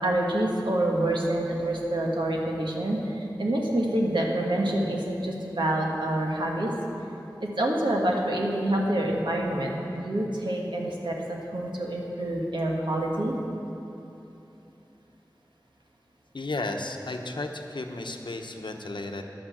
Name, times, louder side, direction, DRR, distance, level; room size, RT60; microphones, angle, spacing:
voice 1, 0.0-6.7 7.4-13.3, right 1 dB, 90° right, -2 dB, 1.6 m, -27 dB
voice 2, 16.3-19.2, left 2 dB, 90° left, 4 dB, 0.9 m, -33 dB
10.5 x 8.9 x 7.2 m, 2.9 s
wide cardioid pair, 50°, 8 cm